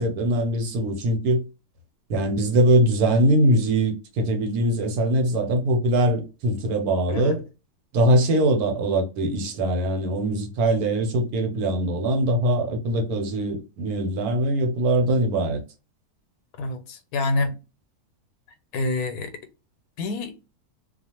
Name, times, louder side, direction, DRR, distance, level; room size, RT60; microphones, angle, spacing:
voice 1, 0.0-1.4 2.1-7.4 7.9-15.6, right 1 dB, 75° right, 1.2 m, -22 dB
voice 2, 16.6-17.5 18.7-19.3 20.0-20.3, left 2 dB, 85° left, 1.1 m, -27 dB
2.4 x 2.4 x 2.8 m
omnidirectional pair, 1.6 m